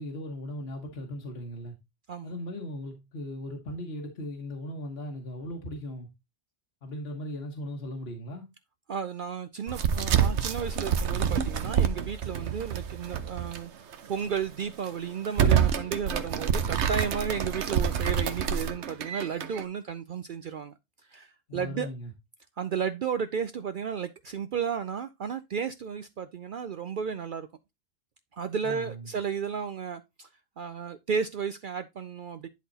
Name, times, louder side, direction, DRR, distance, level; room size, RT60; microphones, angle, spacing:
voice 1, 0.0-1.7 2.2-6.1 6.8-8.5 21.5-22.1 28.6-29.1, left 1 dB, 65° left, 1.5 m, -38 dB
voice 2, 8.9-20.7 21.1-21.9 22.6-27.5 28.3-30.3 30.6-32.5, right 7 dB, 55° right, 0.6 m, -33 dB
sound 1, 9.7-13.6 13.9-14.0 14.6-14.8 15.2-19.6, right 8 dB, 85° right, 1.1 m, -27 dB
10.5 x 4.0 x 4.0 m
omnidirectional pair, 1.1 m